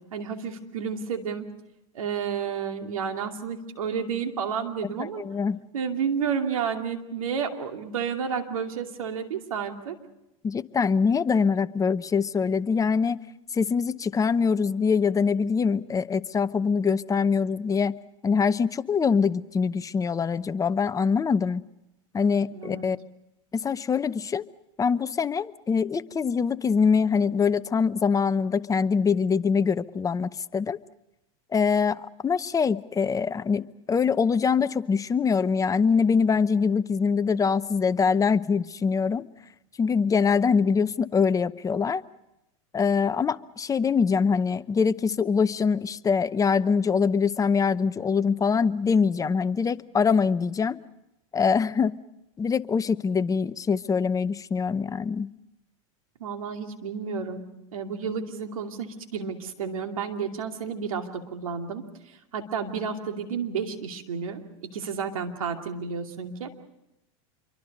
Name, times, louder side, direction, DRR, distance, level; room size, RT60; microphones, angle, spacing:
voice 1, 0.1-1.5 1.9-5.2 5.7-10.0 22.5-22.8 56.2-57.5 57.7-66.5, right 6 dB, 90° right, 4 dB, 2.7 m, -31 dB
voice 2, 5.2-5.6 10.4-13.2 13.5-21.6 22.1-23.0 23.5-24.4 24.8-30.8 31.5-39.3 39.8-42.0 42.7-50.8 51.3-52.0 52.4-55.3, left 5 dB, 20° left, 13 dB, 0.8 m, -24 dB
27.0 x 23.5 x 5.3 m, 0.88 s
hypercardioid pair, 105°, 17 cm